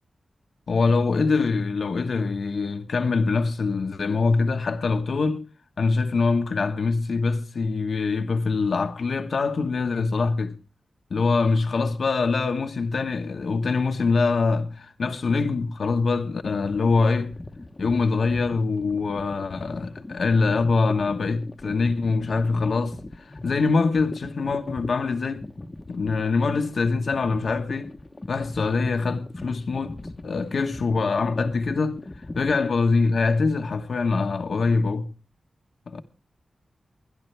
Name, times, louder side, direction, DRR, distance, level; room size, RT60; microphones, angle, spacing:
voice 1, 0.7-5.5 5.8-10.6 11.1-17.3 17.8-25.4 25.9-27.9 28.3-30.0 30.2-32.0 32.3-35.1 35.9-36.0, left 4 dB, 65° left, 1.1 m, -24 dB
sound 1, 16.5-32.6, left 2 dB, 25° left, 1.0 m, -40 dB
24.5 x 10.5 x 3.3 m
wide cardioid pair, 85°, 0 cm